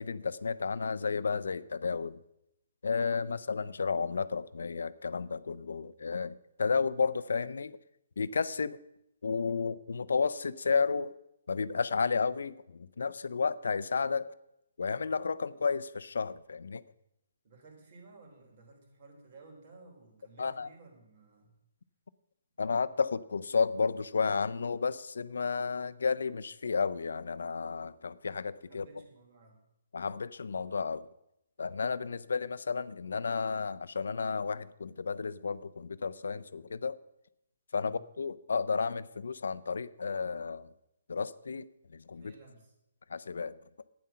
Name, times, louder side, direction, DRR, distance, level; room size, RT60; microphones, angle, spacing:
voice 1, 0.0-2.2 2.8-7.8 8.2-8.8 9.2-11.1 11.5-14.3 14.8-16.8 20.4-20.7 22.6-28.9 29.9-31.1 31.6-37.0 37.7-40.7 41.1-41.7 41.9-42.3 43.1-43.6, left 5 dB, 80° left, 16 dB, 0.6 m, -32 dB
voice 2, 17.4-21.6 28.7-29.6 37.8-38.1 42.1-42.8, right 3 dB, 40° right, 2 dB, 3.5 m, -56 dB
11.5 x 9.6 x 5.7 m, 0.82 s
hypercardioid pair, 165°, 0 cm